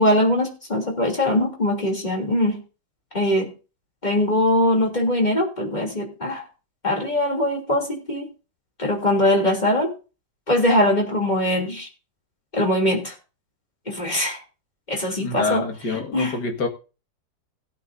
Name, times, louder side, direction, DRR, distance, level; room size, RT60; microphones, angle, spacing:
voice 1, 0.0-2.6 3.1-3.5 4.0-6.4 6.8-8.3 8.8-9.9 10.5-11.9 12.5-13.1 13.9-14.4 14.9-15.6 16.1-16.4, left 1 dB, 25° left, 0 dB, 3.1 m, -21 dB
voice 2, 15.2-16.7, left 4 dB, 60° left, 3 dB, 2.4 m, -26 dB
17.5 x 8.8 x 2.7 m, 0.32 s
omnidirectional pair, 2.0 m